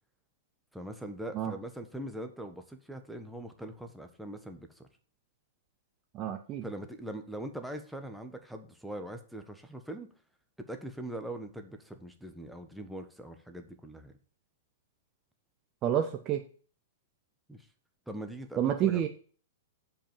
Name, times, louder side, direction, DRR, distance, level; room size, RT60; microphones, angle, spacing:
voice 1, 0.7-4.9 6.6-10.1 10.7-14.1 17.5-17.7 18.1-19.1, right 1 dB, ahead, 5 dB, 1.4 m, -42 dB
voice 2, 6.1-6.6 15.8-16.4 18.6-19.1, right 10 dB, 35° right, 4 dB, 1.0 m, -29 dB
7.4 x 5.3 x 7.1 m, 0.42 s
hypercardioid pair, 110°, 0 cm